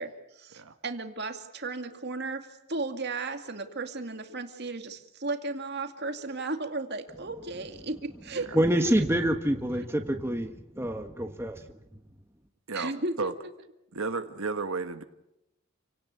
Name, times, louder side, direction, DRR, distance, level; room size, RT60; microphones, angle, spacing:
voice 1, 0.0-8.5 12.7-13.3, right 3 dB, 50° right, 6 dB, 2.3 m, -35 dB
voice 2, 8.5-11.5, right 1 dB, 10° right, 5 dB, 1.4 m, -26 dB
voice 3, 13.9-15.0, right 4 dB, 75° right, 8 dB, 1.4 m, -32 dB
28.5 x 18.0 x 8.3 m, 0.89 s
head